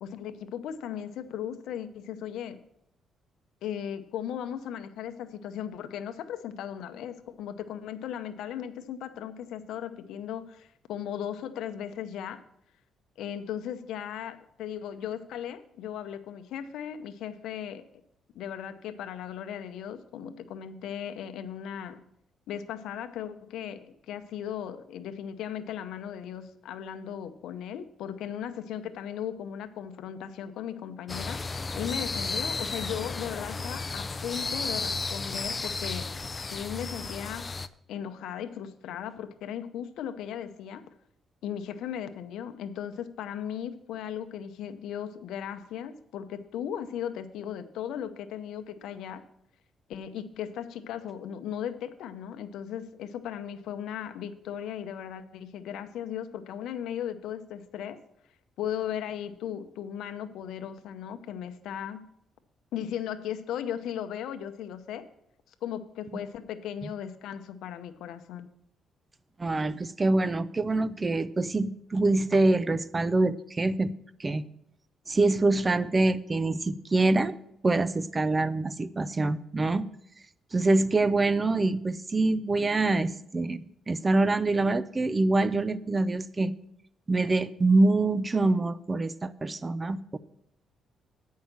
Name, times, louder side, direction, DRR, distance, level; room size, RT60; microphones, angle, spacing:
voice 1, 0.0-2.6 3.6-12.4 13.2-17.8 18.3-22.0 22.5-31.5 31.7-36.2 36.5-37.5 37.9-40.9 41.4-49.3 49.9-58.0 58.6-62.1 62.7-65.1 65.6-68.5 81.4-81.5, left 9 dB, 85° left, 9 dB, 0.7 m, -37 dB
sound 1, 31.1-37.7, left 4 dB, 30° left, 0.4 m, -33 dB
voice 2, 69.4-73.9 74.2-74.4 75.1-77.4 77.6-79.9 80.5-83.6 83.9-86.5 87.1-90.2, right 2 dB, 25° right, 16 dB, 0.5 m, -25 dB
9.0 x 5.6 x 7.3 m, 0.74 s
cardioid pair, 90°, 0 cm